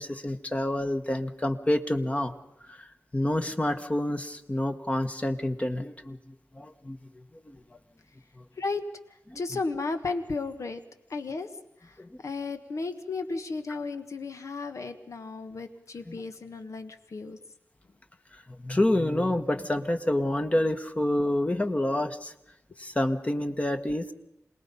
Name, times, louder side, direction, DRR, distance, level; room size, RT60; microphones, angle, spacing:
voice 1, 0.0-2.3 2.7-2.9 3.1-6.2 6.5-7.0 7.5-7.6 9.3-9.4 12.0-12.1 16.1-16.2 18.3-22.3 22.8-24.1, left 1 dB, 25° left, 6 dB, 1.2 m, -28 dB
voice 2, 9.3-10.8 11.1-11.5 11.8-11.9 12.2-17.4, left 3 dB, 70° left, 7 dB, 1.5 m, -34 dB
26.5 x 19.0 x 5.5 m, 0.85 s
wide cardioid pair, 85°, 6 cm